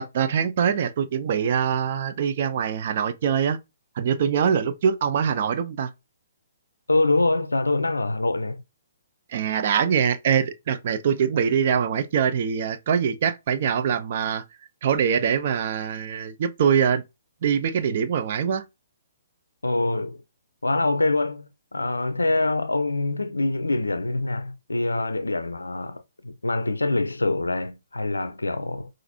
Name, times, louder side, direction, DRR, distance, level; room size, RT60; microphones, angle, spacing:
voice 1, 0.0-3.6 4.0-5.9 9.3-14.4 14.8-17.0 17.4-18.6, right 7 dB, 45° right, 0.5 m, -23 dB
voice 2, 6.9-8.6 19.6-20.2 20.6-28.9, left 2 dB, 80° left, 0.4 m, -25 dB
5.8 x 2.5 x 2.7 m
figure-of-eight pair, 130°, 0 cm